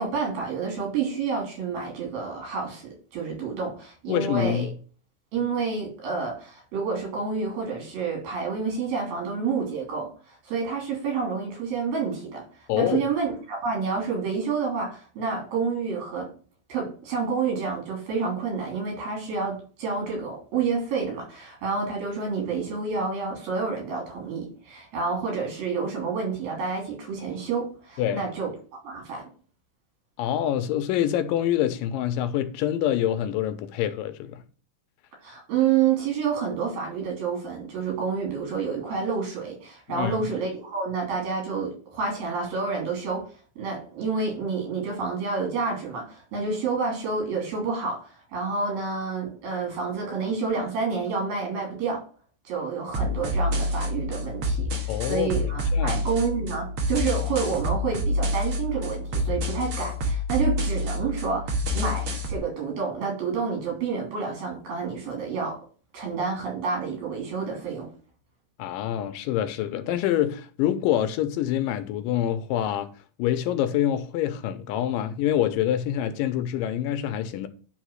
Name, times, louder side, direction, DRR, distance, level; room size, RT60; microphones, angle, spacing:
voice 1, 0.0-4.7 5.3-12.4 12.8-16.3 16.7-29.2 35.2-43.3 43.6-52.0 52.4-65.6 65.9-67.9, right 5 dB, 85° right, 4.9 m, -29 dB
voice 2, 4.1-4.7 12.7-13.1 28.0-28.2 30.2-34.4 39.9-40.3 54.9-55.4 55.7-56.0 68.6-72.9 73.2-77.5, left 11 dB, 80° left, 2.3 m, -26 dB
sound 1, 52.9-62.3, left 1 dB, 55° right, 1.9 m, -27 dB
10.0 x 3.4 x 6.3 m
omnidirectional pair, 4.0 m